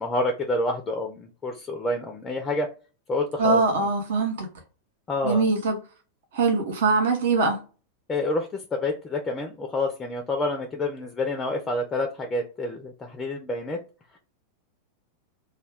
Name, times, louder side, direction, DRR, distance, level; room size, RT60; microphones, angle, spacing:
voice 1, 0.0-2.7 3.1-3.9 5.1-5.4 8.1-13.8, left 2 dB, 15° left, 0.4 m, -28 dB
voice 2, 3.4-4.5 5.2-5.8 6.3-7.6, right 3 dB, 60° right, 0.5 m, -22 dB
2.2 x 2.2 x 3.3 m
figure-of-eight pair, 90°, 0 cm